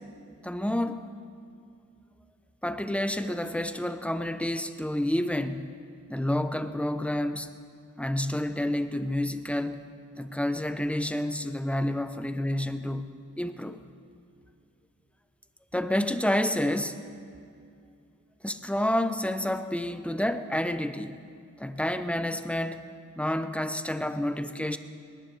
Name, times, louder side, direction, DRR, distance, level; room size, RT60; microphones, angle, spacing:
voice 1, 0.4-1.0 2.6-5.7 6.1-7.5 8.0-9.8 10.2-13.8 15.7-17.0 18.4-21.2 21.6-22.9 23.2-24.8, left 1 dB, 5° left, 9 dB, 0.8 m, -29 dB
20.5 x 19.0 x 3.3 m, 2.4 s
wide cardioid pair, 60°, 31 cm